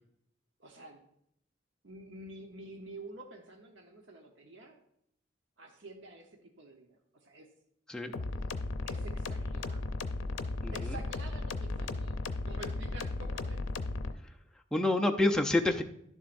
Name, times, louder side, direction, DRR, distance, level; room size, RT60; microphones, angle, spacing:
voice 1, 0.6-1.0 1.8-4.8 5.6-7.5 8.8-9.9 10.7-13.6, right 2 dB, 65° right, 2 dB, 1.0 m, -49 dB
sound 1, 8.1-14.1, left 2 dB, 85° left, 0.6 m, -35 dB
voice 2, 10.6-10.9 14.7-15.8, left 2 dB, 5° left, 2 dB, 0.5 m, -28 dB
11.0 x 7.2 x 2.6 m, 0.74 s
head